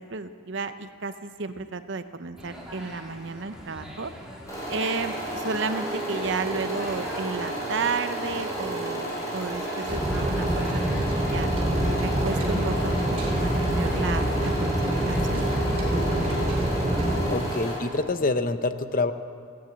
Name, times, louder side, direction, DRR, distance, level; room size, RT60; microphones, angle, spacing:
voice 1, 0.0-4.1 4.7-11.5 12.0-15.5, right 4 dB, 60° right, 11 dB, 0.7 m, -33 dB
sound 1, 2.4-18.0, equal, 5° right, 2.2 m, -42 dB
sound 2, 4.5-17.7, right 1 dB, 15° left, 5.5 m, -32 dB
sound 3, 9.9-17.3, right 1 dB, 30° right, 3.1 m, -26 dB
voice 2, 17.3-19.1, left 3 dB, 40° left, 10 dB, 0.7 m, -26 dB
16.0 x 10.5 x 8.0 m, 2.1 s
head